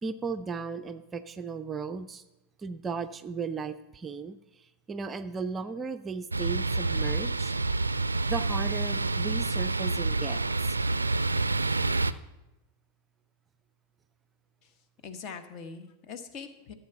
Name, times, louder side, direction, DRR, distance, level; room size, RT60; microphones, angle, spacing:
voice 1, 0.0-2.2 2.6-7.5 8.3-10.8, right 5 dB, 20° right, 10 dB, 0.5 m, -36 dB
sound 1, 6.3-12.1, right 3 dB, 80° right, 0.3 m, -28 dB
voice 2, 14.6-16.7, left 5 dB, 40° left, 9 dB, 1.2 m, -43 dB
14.0 x 7.1 x 5.8 m, 0.98 s
figure-of-eight pair, 90°, 0 cm